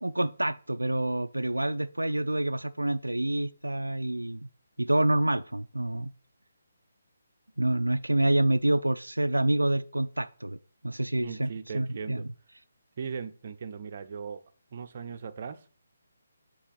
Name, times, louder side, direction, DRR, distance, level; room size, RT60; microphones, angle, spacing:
voice 1, 0.0-4.4 4.8-6.1 7.6-10.6 10.8-11.5 11.7-12.2, right 1 dB, 80° right, 0.3 m, -27 dB
voice 2, 11.2-12.3 13.0-14.4 14.7-15.7, right 6 dB, 40° right, 0.6 m, -38 dB
8.1 x 2.9 x 5.6 m
figure-of-eight pair, 145°, 0 cm